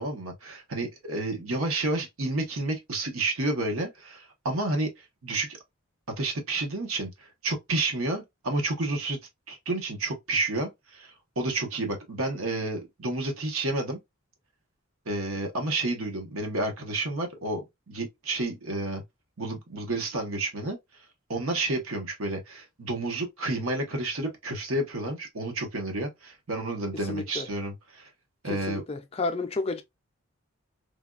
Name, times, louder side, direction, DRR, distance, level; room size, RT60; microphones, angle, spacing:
voice 1, 0.0-5.6 6.2-9.2 9.5-14.0 15.1-19.0 19.4-20.8 21.3-28.1 28.4-28.8, right 2 dB, 75° right, 0.9 m, -30 dB
voice 2, 27.1-27.5 28.5-29.8, left 3 dB, 25° left, 0.4 m, -31 dB
3.3 x 2.3 x 2.3 m
head